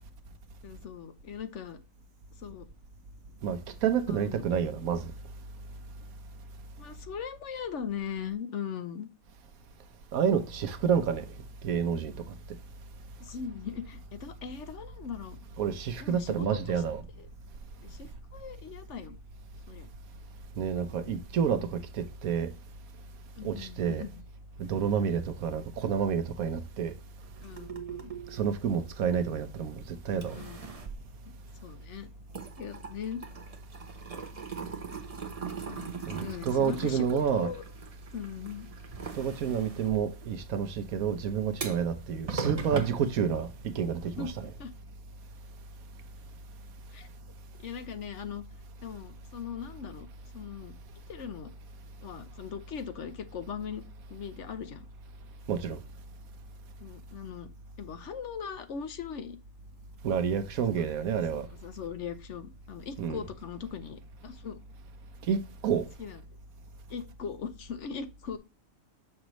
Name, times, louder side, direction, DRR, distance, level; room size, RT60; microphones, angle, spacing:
voice 1, 0.6-1.8 2.4-2.7 4.1-4.5 6.8-9.1 13.2-15.4 16.0-16.8 17.2-17.3 17.8-19.2 19.7-19.9 20.8-21.2 23.3-24.2 27.4-28.1 30.3-30.6 31.3-31.4 31.6-32.1 32.6-33.2 35.7-37.6 38.1-38.7 44.2-44.3 44.6-44.7 46.9-47.1 47.6-48.4 48.8-50.1 50.3-50.7 51.1-51.5 52.0-53.8 54.1-54.9 56.8-57.5 57.8-59.4 60.8-60.9 61.5-64.6 66.0-66.2 66.9-68.4, left 7 dB, 60° left, 1.0 m, -39 dB
voice 2, 3.4-5.1 10.1-11.3 11.6-12.3 15.6-17.0 20.6-22.5 23.4-24.1 24.6-26.9 28.3-30.4 36.1-37.5 39.1-44.3 55.5-55.8 60.0-61.5 63.0-63.2 65.3-65.9, right 7 dB, 80° right, 1.3 m, -29 dB
sound 1, 27.2-29.7 30.1-31.9 32.2-43.9, right 5 dB, 30° right, 0.8 m, -40 dB
6.4 x 6.1 x 3.0 m
omnidirectional pair, 1.4 m